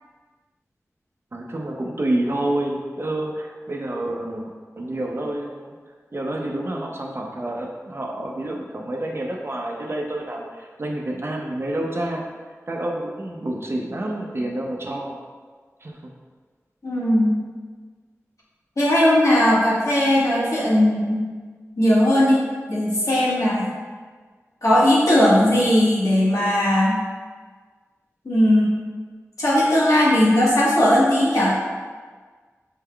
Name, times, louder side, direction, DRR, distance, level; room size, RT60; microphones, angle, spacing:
voice 1, 1.3-5.7 6.1-12.3 12.7-15.2 15.8-16.0 25.3-25.4, right 1 dB, 50° right, 0 dB, 0.6 m, -28 dB
voice 2, 16.8-17.4 18.8-21.2 21.8-22.4 22.7-23.7 24.6-27.0 28.2-28.7 29.4-31.5, left 1 dB, 85° left, -8 dB, 1.4 m, -18 dB
5.6 x 3.6 x 2.3 m, 1.5 s
wide cardioid pair, 65°, 6 cm